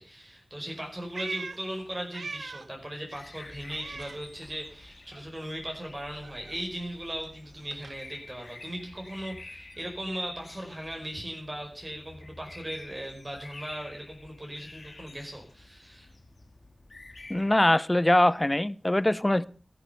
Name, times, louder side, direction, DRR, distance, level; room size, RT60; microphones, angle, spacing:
voice 1, 0.0-16.1, equal, 30° right, 1 dB, 4.9 m, -38 dB
Meow, 0.7-2.8 3.1-4.8 5.1-9.3, right 4 dB, 85° right, 0.8 m, -44 dB
sound 1, 3.1-17.6, left 2 dB, 60° left, 2.6 m, -49 dB
voice 2, 17.3-19.4, left 1 dB, 20° left, 19 dB, 0.8 m, -23 dB
14.0 x 11.5 x 6.8 m, 0.41 s
wide cardioid pair, 50°, 0 cm